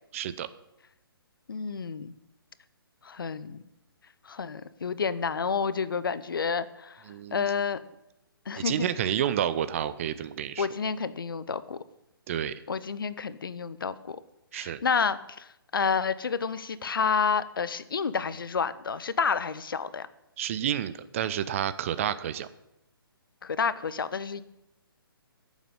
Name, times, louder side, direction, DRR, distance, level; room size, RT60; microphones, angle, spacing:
voice 1, 0.1-0.5 7.1-7.4 8.6-10.7 12.3-12.6 14.5-14.8 20.4-22.5, right 10 dB, 35° right, 14 dB, 0.6 m, -30 dB
voice 2, 1.5-2.1 3.0-3.6 4.2-7.0 7.3-7.8 8.5-9.1 10.6-11.8 12.7-14.2 14.5-20.1 23.4-24.4, left 6 dB, 65° left, 15 dB, 0.8 m, -30 dB
9.1 x 7.3 x 8.9 m, 0.87 s
figure-of-eight pair, 135°, 13 cm